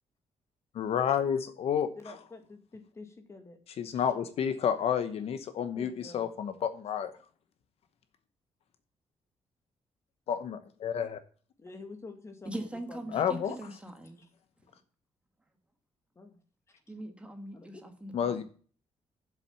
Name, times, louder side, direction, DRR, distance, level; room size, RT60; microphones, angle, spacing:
voice 1, 0.7-2.2 3.8-7.1 10.3-11.2 13.1-13.6 18.1-18.4, left 8 dB, 65° left, 10 dB, 0.9 m, -30 dB
voice 2, 2.0-3.6 5.7-6.3 11.6-13.5 14.2-14.3 16.2-16.4 17.5-17.8, left 3 dB, 25° left, 6 dB, 2.0 m, -48 dB
voice 3, 12.4-14.2 16.9-18.4, right 1 dB, 10° right, 5 dB, 1.5 m, -41 dB
7.6 x 7.5 x 7.0 m, 0.43 s
cardioid pair, 160°, 11 cm